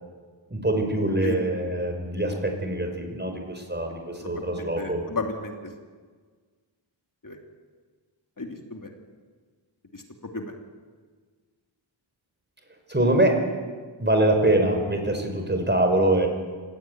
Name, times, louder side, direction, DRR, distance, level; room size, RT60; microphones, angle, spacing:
voice 1, 0.5-5.0 12.9-13.4 14.0-16.3, right 1 dB, 20° right, 4 dB, 5.2 m, -24 dB
voice 2, 4.2-5.6 7.2-7.4 8.4-8.9 9.9-10.0 10.3-10.5, left 3 dB, 40° left, 3 dB, 3.0 m, -34 dB
27.0 x 15.5 x 9.4 m, 1.5 s
wide cardioid pair, 100°, 48 cm